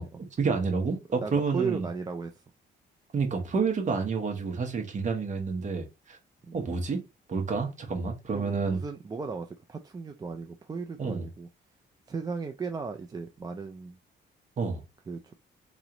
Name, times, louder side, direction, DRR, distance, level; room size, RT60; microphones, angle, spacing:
voice 1, 0.4-1.9 3.1-6.2 6.5-7.0 7.3-8.8 11.0-11.3 14.6-14.8, right 4 dB, 40° right, 1.1 m, -29 dB
voice 2, 1.2-2.4 6.5-6.6 8.3-11.5 12.1-14.0 15.1-15.3, right 5 dB, 20° right, 0.4 m, -36 dB
3.0 x 3.0 x 3.8 m
cardioid pair, 130°, 19 cm